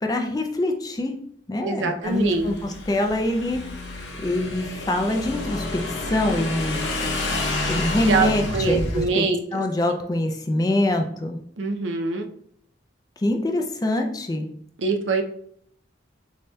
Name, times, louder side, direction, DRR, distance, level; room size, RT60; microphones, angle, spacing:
voice 1, 0.0-1.2 1.5-3.6 4.2-6.8 7.7-9.3 9.5-11.4 13.2-14.5, left 1 dB, 20° left, 4 dB, 0.4 m, -24 dB
voice 2, 1.6-2.5 8.1-9.6 11.6-12.2 14.8-15.2, right 4 dB, 75° right, 5 dB, 0.5 m, -24 dB
Motorcycle / Engine, 2.0-9.0, left 2 dB, 75° left, 0.8 m, -29 dB
6.4 x 2.7 x 2.2 m, 0.67 s
head